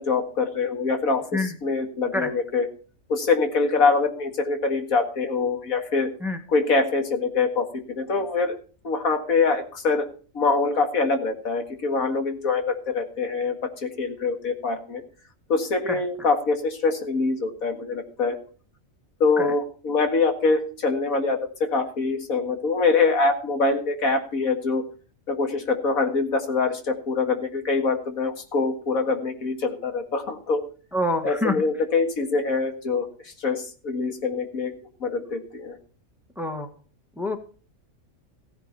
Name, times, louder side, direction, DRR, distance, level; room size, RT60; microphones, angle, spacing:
voice 1, 0.0-2.7 3.1-6.1 6.5-8.6 8.8-10.1 10.3-15.0 15.5-18.4 19.2-24.8 25.3-30.6 31.2-33.1 33.4-34.7 35.0-35.8, left 4 dB, 85° left, 5 dB, 2.3 m, -24 dB
voice 2, 30.9-31.6 36.4-36.7 37.2-37.4, left 1 dB, ahead, 7 dB, 1.4 m, -26 dB
15.5 x 9.8 x 4.3 m, 0.40 s
omnidirectional pair, 1.4 m